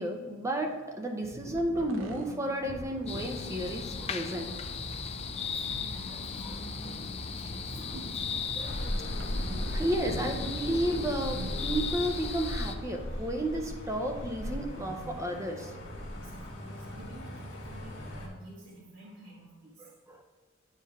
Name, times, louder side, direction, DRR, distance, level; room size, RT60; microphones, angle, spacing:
voice 1, 0.0-4.6 6.4-6.6 8.6-8.8 9.4-15.7 19.8-20.2, right 1 dB, 15° right, 2 dB, 0.6 m, -32 dB
sound 1, 1.2-11.9, right 1 dB, 75° right, 0.8 m, -44 dB
sound 2, 3.1-12.8, left 5 dB, 30° left, 0.4 m, -37 dB
voice 2, 5.3-8.9 16.1-19.9, right 1 dB, 55° right, -9 dB, 1.7 m, -51 dB
sound 3, 8.6-18.3, equal, 60° left, 1.9 m, -38 dB
9.4 x 4.5 x 3.5 m, 1.5 s
head